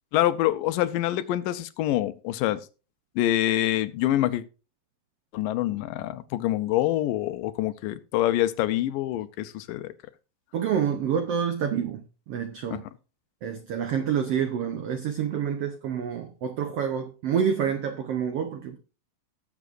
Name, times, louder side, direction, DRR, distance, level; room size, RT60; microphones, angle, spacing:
voice 1, 0.1-2.6 3.2-4.4 5.3-9.9 12.7-12.8, left 14 dB, 80° left, 2.3 m, -26 dB
voice 2, 10.5-12.0 12.3-12.8 13.4-18.8, right 8 dB, 80° right, 1.4 m, -28 dB
19.0 x 7.4 x 2.5 m
omnidirectional pair, 4.0 m